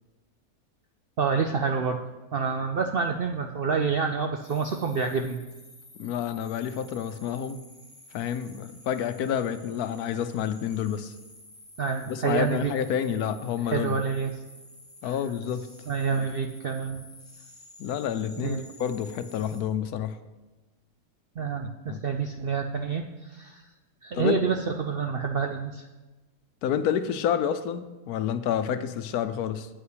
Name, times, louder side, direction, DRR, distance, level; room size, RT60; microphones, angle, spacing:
voice 1, 1.2-2.0 2.3-5.4 11.8-12.7 13.7-14.3 15.0-15.2 15.9-17.0 18.4-18.6 21.4-23.6 24.0-25.9, right 5 dB, 75° right, 4 dB, 0.5 m, -28 dB
sound 1, 4.4-19.6, left 1 dB, 10° left, 1.3 m, -51 dB
voice 2, 6.0-7.6 8.1-11.1 12.1-14.0 15.0-15.7 16.2-16.3 17.8-20.2 21.9-22.0 24.1-24.4 26.6-29.7, left 9 dB, 75° left, 11 dB, 1.1 m, -29 dB
8.3 x 5.7 x 7.9 m, 1.2 s
omnidirectional pair, 1.6 m